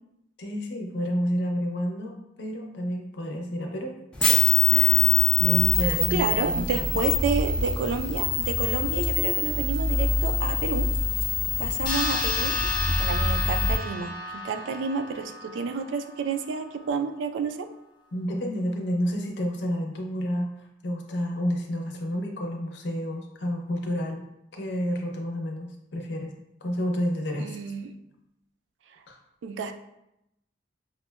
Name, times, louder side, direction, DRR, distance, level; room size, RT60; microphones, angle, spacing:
voice 1, 0.4-4.4 4.7-5.1 5.4-6.7 18.1-24.2 24.5-26.3 26.6-27.6 29.1-29.2, equal, 65° left, 1 dB, 0.6 m, -30 dB
sound 1, 4.2-13.7, left 3 dB, 5° left, 0.3 m, -24 dB
voice 2, 5.8-10.9 11.6-17.7 27.4-27.9 29.4-29.7, right 5 dB, 75° right, 7 dB, 0.3 m, -30 dB
sound 2, 11.9-16.7, left 1 dB, 25° left, 0.7 m, -33 dB
5.9 x 2.1 x 2.2 m, 0.85 s
head